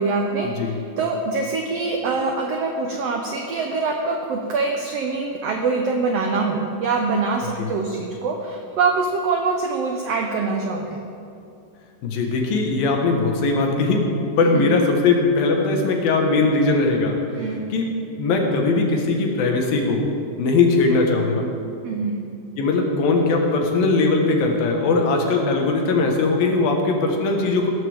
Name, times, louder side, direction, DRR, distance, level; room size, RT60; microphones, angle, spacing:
voice 1, 0.0-11.0 14.5-14.7 17.3-17.6 21.8-22.2, right 4 dB, 85° right, 2 dB, 1.4 m, -24 dB
voice 2, 12.0-17.2 17.7-17.9 18.2-20.1 20.4-21.5 22.6-27.7, left 3 dB, 85° left, 1 dB, 3.2 m, -20 dB
16.5 x 13.5 x 3.6 m, 2.5 s
omnidirectional pair, 4.0 m